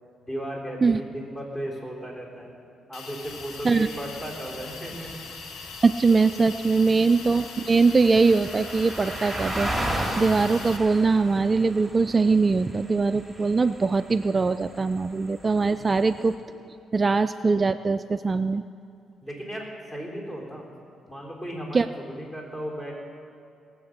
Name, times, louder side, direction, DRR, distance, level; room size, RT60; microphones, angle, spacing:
voice 1, 0.2-2.5 2.9-5.1 6.9-7.0 15.7-15.9 19.2-20.7 21.1-22.9, equal, 20° left, -1 dB, 3.8 m, -35 dB
Hiss, 2.9-10.8, left 5 dB, 70° left, 1.0 m, -41 dB
sound 1, 3.2-16.3, right 1 dB, ahead, 2.3 m, -37 dB
voice 2, 5.8-16.4 16.9-18.6 21.7-21.9, right 4 dB, 30° right, 11 dB, 0.3 m, -22 dB
19.5 x 7.8 x 6.6 m, 2.6 s
cardioid pair, 90°, 0 cm